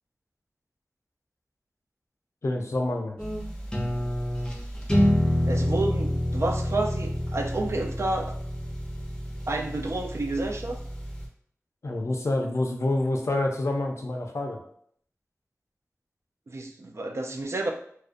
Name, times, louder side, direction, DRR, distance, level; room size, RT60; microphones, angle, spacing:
voice 1, 2.4-3.2 11.8-14.6, left 2 dB, 65° left, 2 dB, 0.4 m, -27 dB
sound 1, 3.2-11.3, equal, 15° left, 0.6 m, -28 dB
voice 2, 5.5-8.4 9.5-10.8 16.5-17.7, right 2 dB, 60° right, 3 dB, 0.3 m, -30 dB
2.4 x 2.1 x 2.4 m, 0.64 s
wide cardioid pair, 55°, 5 cm